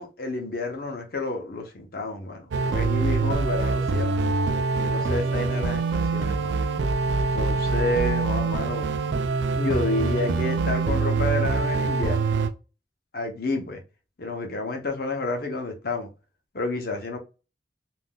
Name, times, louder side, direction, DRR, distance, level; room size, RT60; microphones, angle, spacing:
voice 1, 0.0-4.2 4.7-6.6 7.3-8.9 9.6-12.3 13.1-13.8 14.2-16.1 16.5-17.2, left 2 dB, 55° left, 0.7 m, -30 dB
sound 1, 2.5-12.5, right 4 dB, 90° right, 0.4 m, -24 dB
3.5 x 2.4 x 2.2 m
head